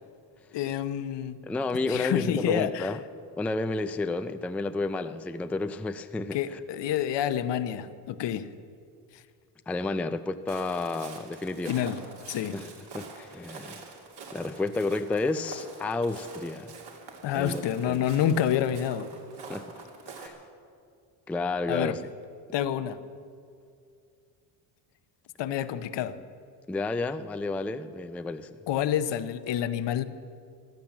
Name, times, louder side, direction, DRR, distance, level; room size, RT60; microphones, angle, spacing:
voice 1, 0.5-1.4 1.9-2.9 6.3-8.5 11.7-12.0 12.3-12.6 17.2-19.1 21.7-22.0 22.5-23.0 25.4-26.2 28.7-30.0, left 10 dB, 65° left, 0.9 m, -28 dB
voice 2, 1.5-3.0 3.4-6.6 9.7-11.8 12.5-13.9 14.3-16.8 17.3-18.1 19.5-19.7 20.2-20.4 21.3-22.0 26.7-28.6, left 3 dB, 5° left, 0.4 m, -31 dB
Walk footsteps, 10.5-20.3, right 4 dB, 60° right, 2.7 m, -46 dB
16.0 x 12.0 x 7.3 m
cardioid pair, 110°, 46 cm